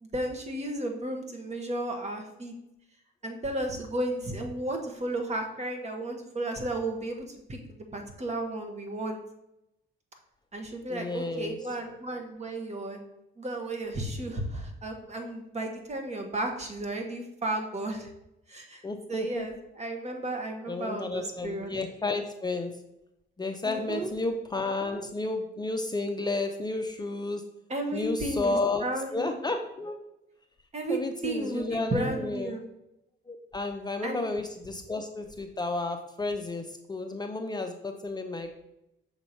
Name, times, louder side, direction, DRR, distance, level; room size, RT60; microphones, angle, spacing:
voice 1, 0.0-2.5 3.2-9.2 10.5-13.0 13.4-18.1 18.5-21.8 23.6-24.1 27.7-29.3 30.7-32.6 34.0-34.2, right 1 dB, 35° right, 4 dB, 1.2 m, -33 dB
voice 2, 10.9-11.8 18.8-19.5 20.7-22.7 23.4-27.4 27.9-28.8 29.1-30.0 30.9-32.6 33.3-38.6, left 2 dB, 20° left, 4 dB, 0.5 m, -32 dB
6.3 x 2.9 x 5.3 m, 0.86 s
cardioid pair, 90°, 20 cm